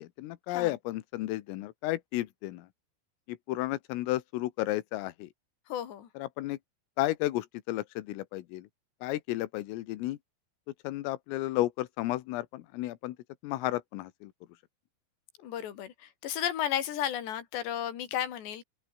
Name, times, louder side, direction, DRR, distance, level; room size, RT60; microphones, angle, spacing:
voice 1, 0.0-2.7 3.3-5.3 6.2-6.6 7.0-8.7 9.0-10.2 10.8-13.2 13.4-14.3, left 17 dB, 90° left, 3.9 m, -33 dB
voice 2, 5.7-6.1 15.4-18.6, left 10 dB, 60° left, 4.8 m, -33 dB
open air
omnidirectional pair, 5.8 m